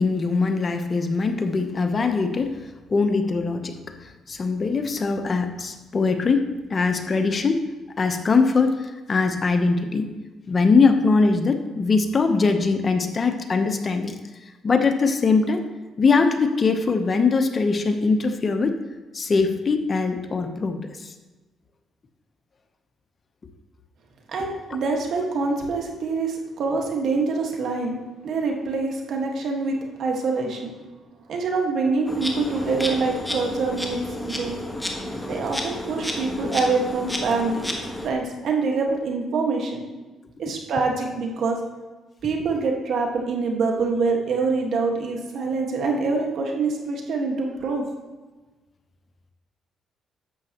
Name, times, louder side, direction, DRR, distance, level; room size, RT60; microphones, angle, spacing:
voice 1, 0.0-7.6 8.0-10.1 10.5-14.1 14.6-15.6 16.0-18.8 19.1-21.1, left 4 dB, 40° left, 6 dB, 0.8 m, -22 dB
voice 2, 24.3-28.0 28.2-30.7 31.3-34.0 34.2-34.6 35.3-37.6 38.0-39.8 40.4-41.6 42.2-47.8, right 4 dB, 65° right, 1 dB, 1.6 m, -25 dB
Insect, 32.1-38.1, left 1 dB, 5° left, 1.4 m, -31 dB
11.0 x 7.5 x 3.0 m, 1.2 s
cardioid pair, 90°, 0 cm